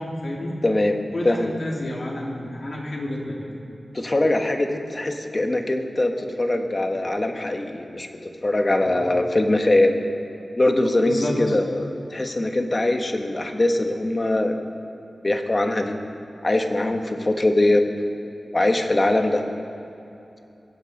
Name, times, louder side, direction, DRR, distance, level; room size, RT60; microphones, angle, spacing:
voice 1, 0.0-0.5 1.1-3.5 8.8-9.1 11.0-11.4, left 1 dB, 60° left, -3 dB, 3.4 m, -30 dB
voice 2, 0.6-1.5 3.9-10.0 10.5-14.6 15.2-15.9 16.4-17.8 18.5-19.4, left 1 dB, 35° left, 4 dB, 1.4 m, -22 dB
22.5 x 8.4 x 5.4 m, 2.8 s
cardioid pair, 60°, 0 cm